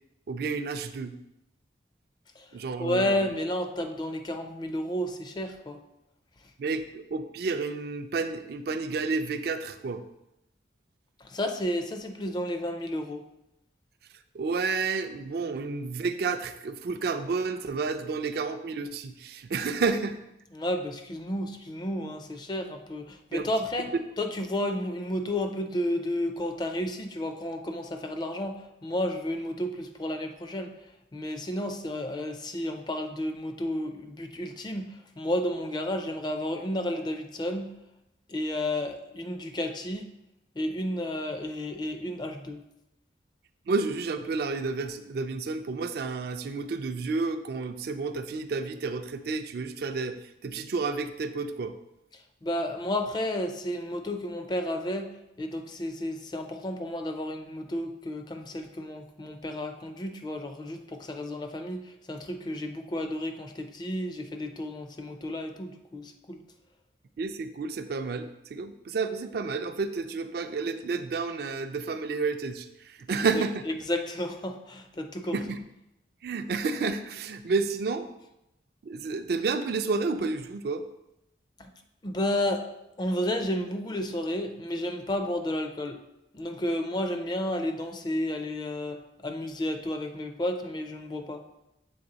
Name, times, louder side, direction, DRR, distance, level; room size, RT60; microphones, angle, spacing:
voice 1, 0.3-1.1 2.5-3.2 6.6-10.0 14.3-20.2 23.3-23.4 43.7-50.2 50.4-51.7 67.2-73.7 75.3-75.6 76.2-78.1 78.8-80.8, right 4 dB, 55° right, 8 dB, 0.4 m, -30 dB
voice 2, 2.8-5.8 11.2-13.3 20.5-30.8 31.1-37.8 38.3-40.1 40.6-42.6 52.4-66.4 73.3-75.4 81.6-81.7 82.0-86.0 86.3-91.5, left 1 dB, 25° left, 6 dB, 0.4 m, -32 dB
7.1 x 3.4 x 3.9 m, 0.87 s
head